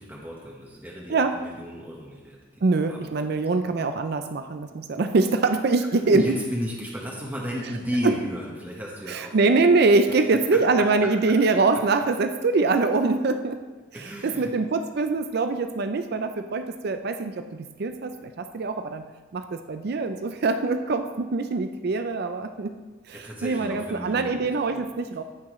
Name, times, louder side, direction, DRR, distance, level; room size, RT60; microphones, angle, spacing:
voice 1, 0.0-3.3 6.0-9.4 10.1-10.2 10.5-10.6 11.0-11.1 13.9-14.5 23.1-24.9, equal, 10° right, -4 dB, 1.2 m, -34 dB
voice 2, 2.6-6.2 8.0-8.2 9.1-13.6 14.2-19.0 19.3-22.7 23.1-25.2, right 3 dB, 55° right, 8 dB, 0.5 m, -23 dB
15.0 x 6.0 x 3.2 m, 1.3 s
head